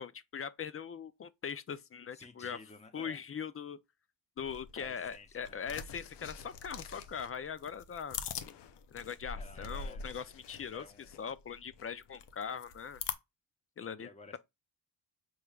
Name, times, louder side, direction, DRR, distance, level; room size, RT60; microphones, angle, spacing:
voice 1, 0.0-2.6 2.9-3.8 4.4-8.2 8.9-10.9 11.2-13.0 13.8-14.4, left 7 dB, 35° left, 0.4 m, -41 dB
voice 2, 2.1-3.2 4.8-5.6 9.4-10.0 10.7-11.2 14.0-14.4, left 3 dB, 15° left, 0.9 m, -53 dB
sound 1, 4.4-13.1, left 6 dB, 70° left, 0.6 m, -44 dB
4.6 x 3.2 x 2.3 m
cardioid pair, 60°, 44 cm